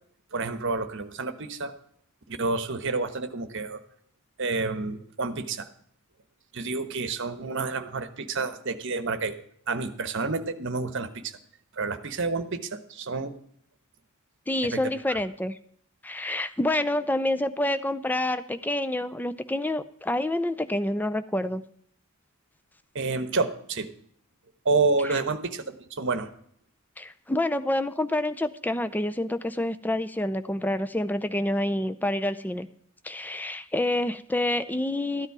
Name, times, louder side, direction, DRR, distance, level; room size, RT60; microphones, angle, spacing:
voice 1, 0.3-1.7 2.3-3.8 4.4-5.7 6.5-11.4 11.7-13.3 14.7-14.8 15.1-15.2 22.9-23.9 24.6-26.3, right 3 dB, 55° right, 10 dB, 1.0 m, -29 dB
voice 2, 14.5-15.6 16.0-21.6 25.1-25.2 27.0-32.7 33.0-35.3, left 1 dB, 10° left, 11 dB, 0.4 m, -28 dB
13.5 x 9.9 x 4.7 m, 0.65 s
head